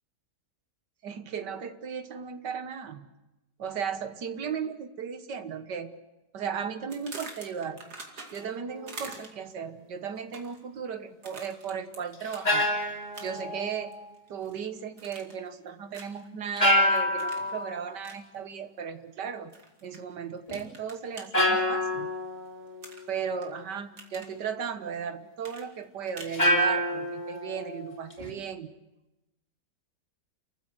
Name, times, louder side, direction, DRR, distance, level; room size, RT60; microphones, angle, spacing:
voice 1, 1.0-3.1 3.6-5.9 6.3-8.0 8.3-12.7 13.2-14.0 14.3-19.5 19.8-22.1 23.1-28.7, right 7 dB, 90° right, 9 dB, 2.0 m, -36 dB
sound 1, 6.9-8.6 8.9-9.5 10.2-10.6 11.2-12.0 12.3-12.5 13.1-13.5 13.9-14.6 15.0-15.5 15.9-16.2 17.2-17.5 18.0-18.2 19.5-20.0 20.5-21.3 22.8-23.5 23.8-24.3 25.4-26.4, right 3 dB, 70° right, 3.0 m, -45 dB
sound 2, 8.7-9.0 12.1-14.1 16.6-17.9 20.5-20.6 21.3-23.0 26.3-28.3, equal, 25° left, 3.0 m, -27 dB
30.0 x 15.0 x 7.8 m, 0.99 s
omnidirectional pair, 1.8 m